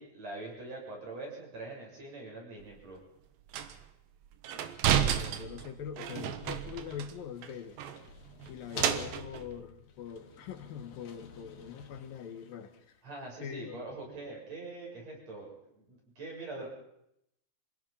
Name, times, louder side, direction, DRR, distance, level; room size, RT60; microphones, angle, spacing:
voice 1, 0.0-3.0 8.7-8.8 13.0-16.7, right 2 dB, 45° right, -1 dB, 8.5 m, -43 dB
sound 1, 2.6-2.7 3.5-3.8 4.4-7.1 7.4-7.5 7.8-9.5, right 9 dB, 75° right, 3.0 m, -32 dB
voice 2, 4.5-7.8 8.5-13.0 13.4-13.8, left 8 dB, 70° left, 6 dB, 3.4 m, -43 dB
sound 2, 7.1-13.1, left 6 dB, 50° left, 2.4 m, -49 dB
27.0 x 17.5 x 5.7 m, 0.78 s
omnidirectional pair, 4.2 m